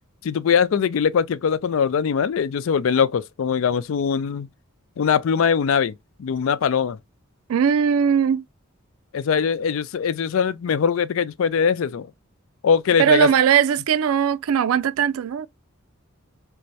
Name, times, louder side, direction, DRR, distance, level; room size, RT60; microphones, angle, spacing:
voice 1, 0.2-4.5 5.0-5.9 6.2-7.0 9.1-12.1 12.6-13.3, left 6 dB, 65° left, 0.4 m, -21 dB
voice 2, 7.5-8.4 13.0-15.5, right 8 dB, 80° right, 0.4 m, -19 dB
3.4 x 3.1 x 2.7 m
head